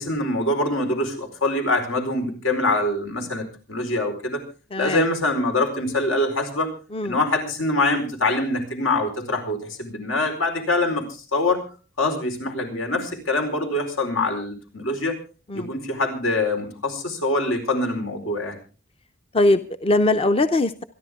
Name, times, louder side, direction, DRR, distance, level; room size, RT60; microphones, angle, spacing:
voice 1, 0.0-4.4 4.8-6.7 7.0-11.6 12.0-15.2 15.5-18.6, left 2 dB, 85° left, 3 dB, 4.6 m, -24 dB
voice 2, 4.7-5.0 6.9-7.2 15.5-15.7 19.3-20.8, left 2 dB, 30° left, 10 dB, 0.6 m, -21 dB
27.0 x 11.0 x 3.6 m, 0.36 s
head